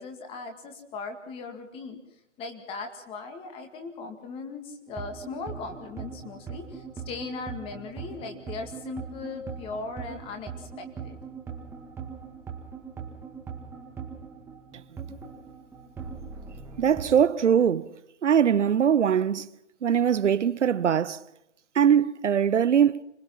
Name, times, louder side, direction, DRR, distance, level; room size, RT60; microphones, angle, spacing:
voice 1, 0.0-2.0 2.4-11.2, left 4 dB, 15° left, 2.1 m, -38 dB
sound 1, 4.9-17.2, right 6 dB, 5° right, 2.0 m, -41 dB
voice 2, 16.8-17.9 18.2-19.5 19.8-21.2 21.7-23.0, right 8 dB, 70° right, 0.8 m, -22 dB
25.5 x 20.0 x 5.9 m
hypercardioid pair, 150°, 37 cm